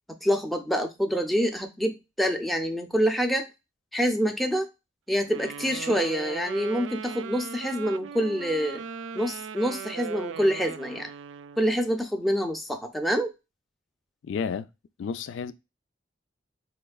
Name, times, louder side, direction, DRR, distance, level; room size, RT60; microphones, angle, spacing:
voice 1, 0.2-3.5 3.9-4.7 5.1-8.8 9.1-11.1 11.6-13.3, equal, ahead, 0.5 m, -26 dB
Wind instrument woodwind instrument, 5.3-11.7, right 7 dB, 80° right, 0.3 m, -38 dB
voice 2, 14.2-14.7 15.0-15.5, left 6 dB, 80° left, 0.3 m, -31 dB
4.3 x 3.1 x 2.2 m
head